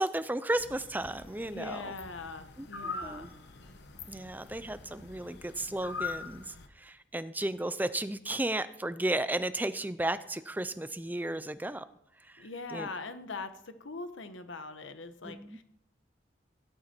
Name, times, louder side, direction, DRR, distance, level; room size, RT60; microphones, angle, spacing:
voice 1, 0.0-1.9 2.6-3.3 4.1-11.8 12.3-12.9 15.2-15.6, right 1 dB, 10° right, 13 dB, 0.5 m, -34 dB
sound 1, 0.6-6.7, left 4 dB, 60° left, 1.2 m, -43 dB
voice 2, 1.5-3.3 12.4-15.6, left 3 dB, 85° left, 9 dB, 1.2 m, -42 dB
17.0 x 11.5 x 4.5 m, 0.75 s
head